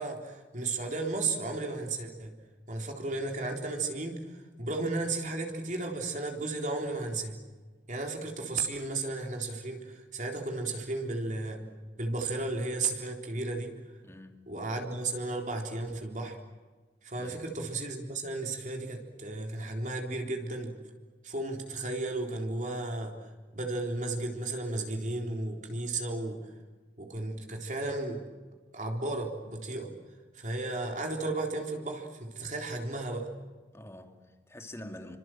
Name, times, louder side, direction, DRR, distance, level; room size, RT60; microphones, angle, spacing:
voice 1, 0.0-2.3 2.7-7.4 7.9-11.6 12.0-14.0 14.5-16.4 17.0-20.7 21.2-26.5 27.0-28.2 28.7-29.9 30.3-33.3, right 2 dB, 45° right, 3.8 m, -34 dB
voice 2, 14.0-14.5 17.2-17.4 33.7-35.2, left 1 dB, 15° left, 2.5 m, -46 dB
30.0 x 25.5 x 7.7 m
head